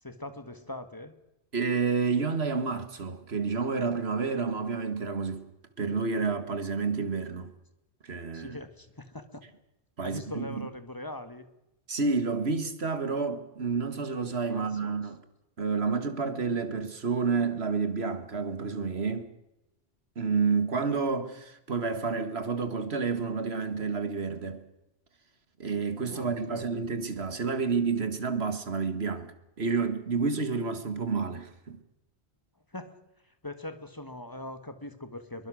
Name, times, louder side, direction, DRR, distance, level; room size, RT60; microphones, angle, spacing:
voice 1, 0.0-1.2 8.3-9.4 10.0-11.5 14.4-14.9 26.0-26.7 32.7-35.5, left 1 dB, 20° left, 1.5 m, -41 dB
voice 2, 1.5-5.4 5.8-7.5 8.0-8.6 10.0-10.7 11.9-15.2 15.6-19.3 20.2-24.6 25.6-31.8, right 4 dB, 70° right, 2.0 m, -29 dB
22.5 x 21.5 x 6.3 m
omnidirectional pair, 1.1 m